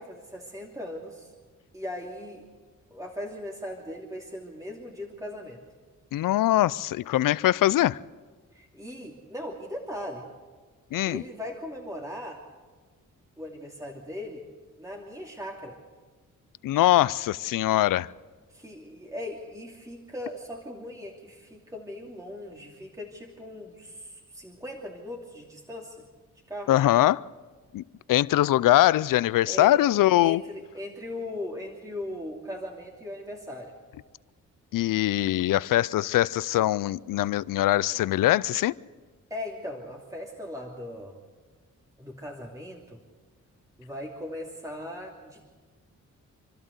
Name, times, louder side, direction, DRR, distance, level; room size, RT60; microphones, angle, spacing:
voice 1, 0.0-1.3 1.7-2.4 2.9-5.6 8.5-10.3 11.0-12.4 13.4-14.5 14.8-15.8 18.5-26.0 26.5-26.8 29.4-29.8 30.2-33.7 39.3-41.2 42.0-43.0 43.8-45.6, left 1 dB, 10° right, 2.8 m, -39 dB
voice 2, 6.1-8.0 10.9-11.2 16.6-18.1 26.7-27.2 27.7-27.8 28.1-30.4 34.7-38.7, left 14 dB, 80° left, 0.5 m, -22 dB
27.0 x 12.5 x 8.1 m
cardioid pair, 65°, 32 cm